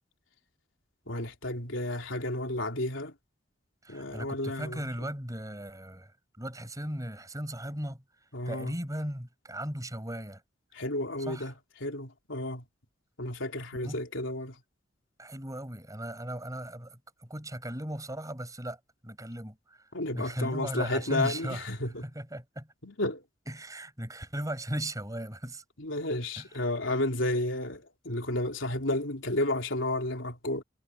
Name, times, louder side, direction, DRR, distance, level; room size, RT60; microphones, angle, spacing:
voice 1, 1.1-3.1 3.9-4.9 8.3-8.7 10.7-11.5 11.8-12.6 13.2-14.6 19.9-22.1 22.8-23.2 25.8-30.6, left 1 dB, 75° left, 3.7 m, -32 dB
voice 2, 3.8-10.4 11.2-11.5 13.8-14.0 15.2-21.7 22.0-22.7 23.5-25.6 26.4-26.5, right 1 dB, 15° right, 7.3 m, -37 dB
head